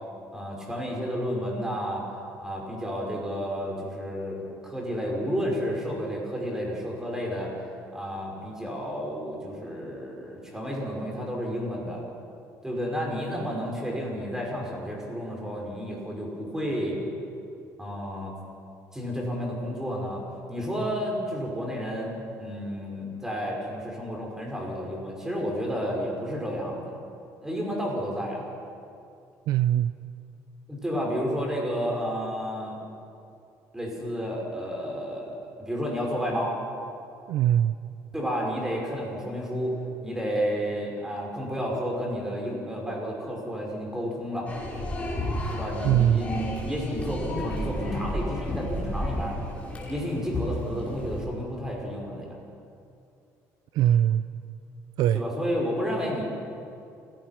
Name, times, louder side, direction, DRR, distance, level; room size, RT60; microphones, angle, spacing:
voice 1, 0.3-2.0 2.4-7.6 7.9-12.0 12.6-17.0 17.8-18.3 18.9-20.2 20.5-27.0 27.4-28.4 30.7-32.8 33.7-36.6 38.1-39.8 40.0-44.5 45.5-49.4 49.9-52.4 55.1-56.2, equal, 5° right, -1 dB, 5.8 m, -31 dB
voice 2, 29.5-29.9 37.3-37.8 45.8-46.2 53.7-54.3 55.0-55.2, right 11 dB, 70° right, 13 dB, 0.6 m, -21 dB
sound 1, 44.5-51.3, left 1 dB, 20° left, 5.1 m, -32 dB
28.5 x 17.0 x 6.0 m, 2.6 s
cardioid pair, 125°, 7 cm